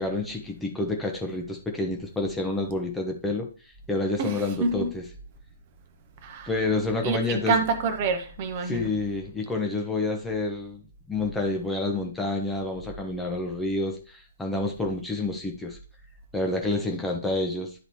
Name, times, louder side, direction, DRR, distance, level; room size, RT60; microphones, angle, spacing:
voice 1, 0.0-3.5 3.9-5.0 6.4-7.6 8.6-10.8 11.1-15.8 16.3-17.7, left 2 dB, 5° left, 0.9 m, -28 dB
voice 2, 4.2-4.9 6.2-6.5 7.0-8.9, right 4 dB, 40° right, 0.9 m, -27 dB
10.5 x 4.0 x 3.0 m
figure-of-eight pair, 125°, 0 cm